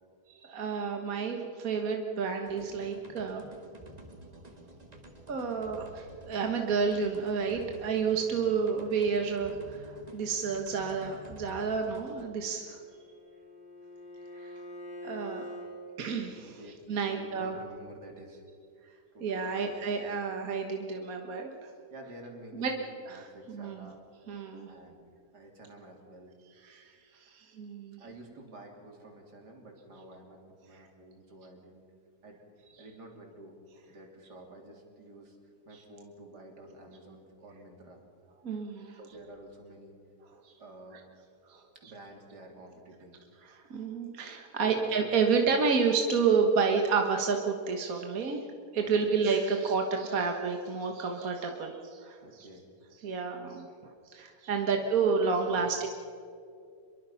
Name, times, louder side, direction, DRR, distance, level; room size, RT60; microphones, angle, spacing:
voice 1, 0.3-3.4 5.3-12.8 14.4-14.5 15.0-15.6 16.0-16.6 16.9-17.6 19.2-21.7 22.5-22.7 23.1-23.9 24.3-24.7 26.6-28.0 38.4-39.0 40.4-40.5 41.5-41.6 43.5-48.4 48.7-52.5 53.0-53.7 54.1-55.9, right 5 dB, 60° right, 3 dB, 1.9 m, -30 dB
sound 1, 2.4-12.2, right 1 dB, 25° right, 1.8 m, -50 dB
Bowed string instrument, 12.5-15.7, equal, 25° left, 4.8 m, -45 dB
voice 2, 17.0-18.4 19.1-20.2 21.9-24.0 24.7-25.1 25.3-26.3 28.0-31.8 32.2-32.4 32.8-33.6 33.9-35.4 35.7-38.0 39.0-40.0 40.6-41.0 41.8-43.2 44.6-44.8 49.0-49.1 52.2-52.7 54.7-54.8 55.2-55.7, right 1 dB, 85° right, 1 dB, 3.8 m, -50 dB
25.5 x 22.5 x 5.8 m, 2.4 s
omnidirectional pair, 1.7 m